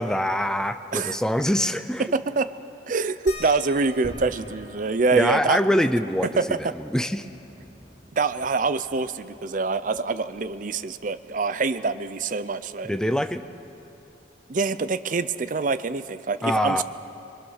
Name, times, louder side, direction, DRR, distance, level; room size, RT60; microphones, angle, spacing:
voice 1, 0.0-2.1 5.1-6.3 6.6-7.3 12.8-13.4 16.4-16.8, equal, 5° left, 9 dB, 0.5 m, -24 dB
voice 2, 2.0-2.5 2.9-5.6 6.4-6.6 8.2-12.9 14.5-16.8, right 4 dB, 45° right, 13 dB, 0.5 m, -25 dB
sound 1, 3.3-8.4 8.7-8.8 9.2-10.9 12.2-12.3 13.0-13.1, left 3 dB, 65° left, 4.8 m, -48 dB
sound 2, 4.0-14.3, equal, 25° right, 2.4 m, -49 dB
24.5 x 22.0 x 6.5 m, 2.7 s
head